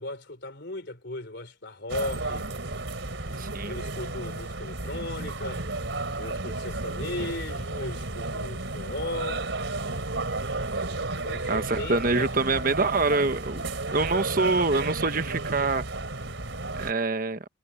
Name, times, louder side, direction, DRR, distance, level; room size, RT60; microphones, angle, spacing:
voice 1, 0.0-2.5 3.6-5.7 6.2-9.5 11.2-12.3 12.6-12.7, left 2 dB, 60° left, 4.1 m, -36 dB
sound 1, 1.9-16.9, right 2 dB, 80° right, 3.6 m, -33 dB
voice 2, 3.4-3.7 11.5-13.6 13.9-15.8 16.8-17.4, right 3 dB, 45° right, 1.2 m, -25 dB
head